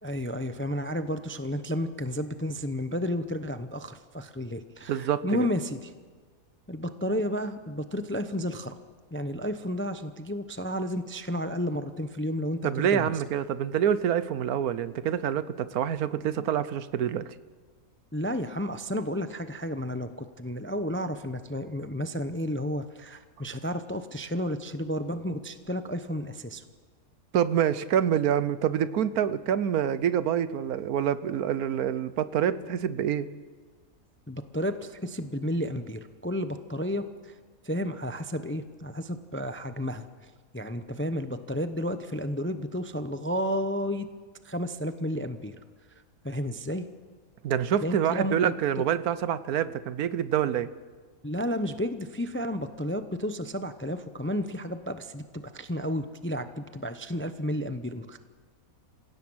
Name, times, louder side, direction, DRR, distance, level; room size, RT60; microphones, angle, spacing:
voice 1, 0.0-5.9 6.7-8.8 9.1-13.1 18.1-26.6 34.3-37.3 37.6-44.1 44.4-45.6 46.2-46.9 47.8-48.4 51.2-58.2, equal, 15° left, 10 dB, 0.4 m, -32 dB
voice 2, 4.9-5.5 12.6-17.3 27.3-33.3 47.4-50.7, right 9 dB, 80° right, 15 dB, 1.3 m, -26 dB
27.0 x 16.5 x 6.3 m, 1.5 s
omnidirectional pair, 1.5 m